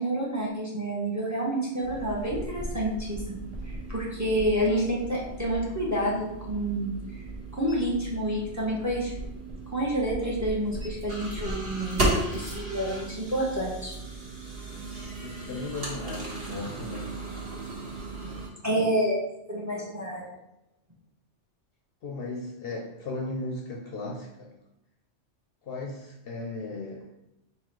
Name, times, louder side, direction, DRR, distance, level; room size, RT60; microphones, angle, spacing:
voice 1, 0.0-3.2 3.6-6.9 7.5-9.1 9.7-13.9 14.9-15.0 18.2-18.4 18.6-19.2 19.5-20.3, right 1 dB, 15° right, -3 dB, 0.8 m, -29 dB
sound 1, 1.8-18.5, right 2 dB, 55° right, 1.4 m, -35 dB
voice 2, 15.2-17.1 22.0-24.6 25.6-27.1, left 2 dB, 60° left, 0 dB, 0.7 m, -36 dB
3.8 x 2.8 x 4.5 m, 0.89 s
omnidirectional pair, 1.2 m